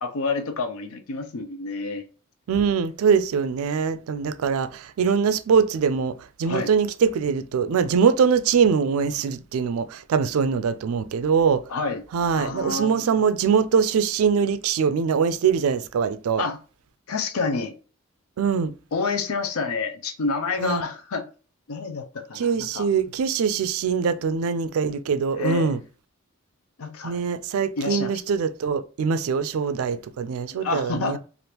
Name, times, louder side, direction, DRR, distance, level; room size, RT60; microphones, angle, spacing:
voice 1, 0.0-2.0 6.4-6.7 11.7-12.0 12.4-13.2 16.4-16.6 17.1-17.7 18.9-21.2 21.7-22.9 25.3-25.8 26.8-27.2 27.8-28.1 30.6-31.2, left 4 dB, 80° left, 0.5 m, -28 dB
voice 2, 2.5-11.6 12.1-16.4 18.4-18.7 20.6-20.8 22.3-25.8 27.0-31.2, right 6 dB, 80° right, 0.3 m, -23 dB
3.3 x 2.5 x 2.8 m
head